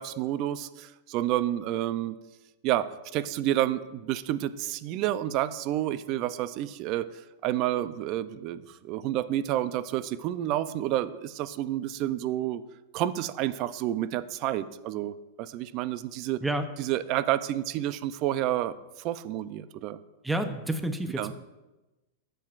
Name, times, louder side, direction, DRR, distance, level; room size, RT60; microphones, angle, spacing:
voice 1, 0.0-2.2 2.6-12.6 12.9-16.4 16.8-20.0 21.2-21.3, right 13 dB, 45° right, 14 dB, 0.5 m, -30 dB
voice 2, 20.2-21.3, right 1 dB, 5° right, 7 dB, 0.7 m, -29 dB
13.0 x 7.7 x 2.5 m, 1.1 s
hypercardioid pair, 120°, 0 cm